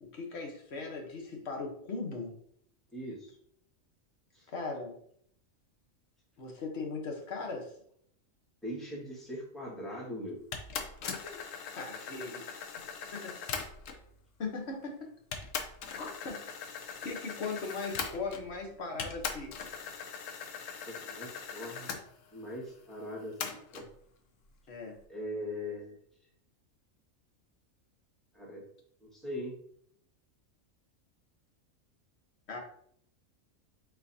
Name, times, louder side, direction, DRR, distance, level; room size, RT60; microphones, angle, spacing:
voice 1, 0.0-2.3 4.5-4.9 6.4-7.7 11.0-11.4 11.8-12.4 12.8-12.9 13.1-13.4 14.4-15.1 16.0-16.5 17.0-19.5 24.7-25.0 32.5-32.6, left 4 dB, 55° left, 1 dB, 1.2 m, -39 dB
voice 2, 2.9-3.3 4.3-4.5 8.6-10.4 12.0-12.1 20.9-21.9 22.3-23.9 25.1-26.0 28.3-28.7 29.0-29.6, left 1 dB, ahead, -5 dB, 1.5 m, -41 dB
sound 1, 10.5-14.1 14.8-14.9 15.3-18.6 19.0-22.0 23.4-23.9, left 6 dB, 70° left, 1.0 m, -40 dB
4.5 x 4.0 x 2.7 m, 0.65 s
omnidirectional pair, 1.4 m